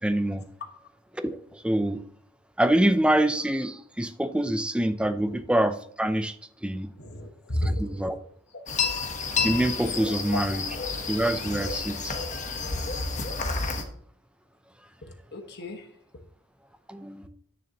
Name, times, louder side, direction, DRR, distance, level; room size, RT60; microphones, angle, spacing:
voice 1, 0.0-0.5 1.1-2.0 2.6-6.3 6.6-6.9 7.8-8.2 9.4-10.7 11.1-12.1 16.9-17.3, right 1 dB, 5° right, 9 dB, 0.5 m, -25 dB
voice 2, 7.0-8.1 8.9-9.1 10.3-10.7 15.0-15.9, left 1 dB, 50° left, 5 dB, 1.4 m, -33 dB
sound 1, 8.7-13.8, left 4 dB, 35° left, 1.1 m, -30 dB
10.5 x 9.3 x 2.9 m, 0.62 s
head